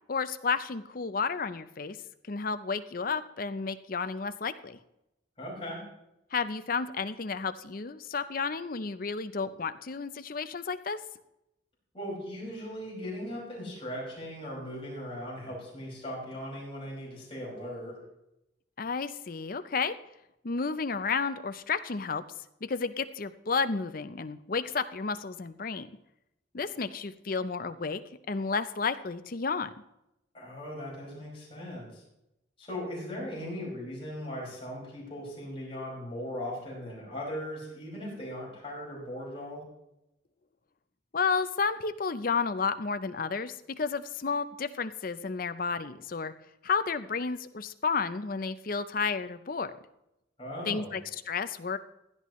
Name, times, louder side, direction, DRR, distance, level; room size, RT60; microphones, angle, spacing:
voice 1, 0.1-2.0 2.3-4.8 6.3-11.0 18.8-19.9 20.4-22.2 22.6-25.9 26.5-28.0 28.3-29.7 41.1-46.3 46.6-49.7 50.7-51.8, left 5 dB, 45° left, 12 dB, 0.6 m, -32 dB
voice 2, 5.4-5.8 11.9-18.0 30.3-32.0 32.6-39.6 50.4-51.0, equal, 30° left, -5 dB, 5.6 m, -38 dB
16.0 x 11.0 x 3.1 m, 0.88 s
head